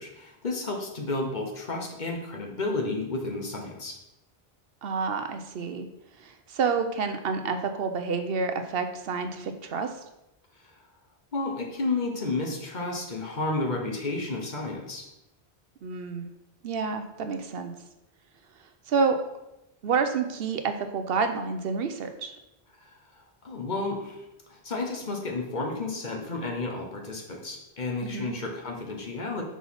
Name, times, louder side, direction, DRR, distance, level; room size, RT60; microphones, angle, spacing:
voice 1, 0.0-4.0 11.3-15.1 22.9-23.0 23.4-29.4, left 3 dB, 45° left, 1 dB, 1.2 m, -32 dB
voice 2, 4.8-5.9 6.2-9.9 15.8-16.3 16.6-17.7 18.9-19.2 19.8-22.3 28.0-28.3, right 5 dB, 65° right, 8 dB, 0.8 m, -29 dB
6.0 x 4.2 x 5.6 m, 0.90 s
omnidirectional pair, 1.1 m